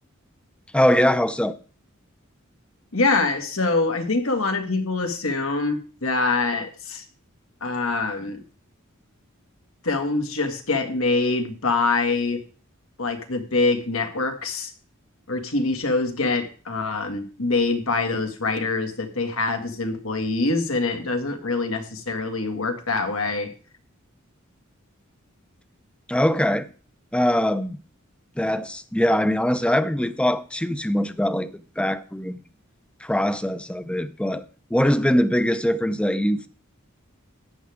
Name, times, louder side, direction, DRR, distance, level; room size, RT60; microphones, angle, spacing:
voice 1, 0.7-1.6 26.1-26.7 27.1-27.8 28.4-31.5 31.8-32.4 33.0-34.4 34.7-36.5, equal, 5° left, 0.7 m, -22 dB
voice 2, 2.9-7.0 7.6-8.4 9.8-12.4 13.0-14.7 15.3-23.5, left 3 dB, 80° left, 2.1 m, -24 dB
14.5 x 9.5 x 3.6 m
head